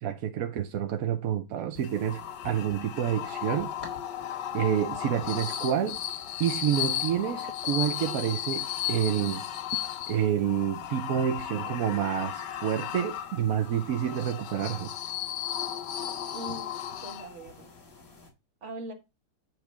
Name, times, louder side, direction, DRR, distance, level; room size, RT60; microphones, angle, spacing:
voice 1, 0.0-3.7 4.5-6.0 6.4-9.4 10.1-14.9, right 9 dB, 65° right, 0.9 m, -28 dB
sound 1, 1.7-18.3, left 3 dB, 45° left, 3.6 m, -52 dB
sound 2, 1.8-17.6, left 11 dB, 65° left, 1.3 m, -35 dB
voice 2, 16.3-17.7 18.6-18.9, right 2 dB, 40° right, 1.9 m, -41 dB
9.3 x 3.4 x 6.0 m
omnidirectional pair, 2.2 m